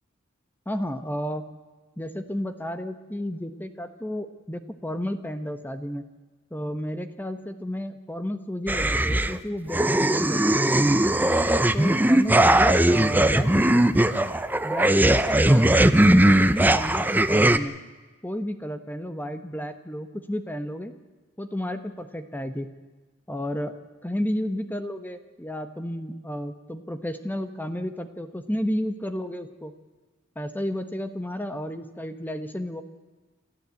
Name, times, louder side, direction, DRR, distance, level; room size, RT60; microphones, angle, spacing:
voice 1, 0.7-1.5 2.0-6.0 6.5-10.8 11.7-13.8 14.6-17.7 18.2-20.9 21.4-22.7 23.3-23.8 24.0-29.7 30.4-32.8, equal, 10° left, 9 dB, 1.0 m, -32 dB
sound 1, 8.7-9.4 9.7-17.6, right 1 dB, 10° right, 0.7 m, -19 dB
28.0 x 13.5 x 8.4 m, 1.3 s
head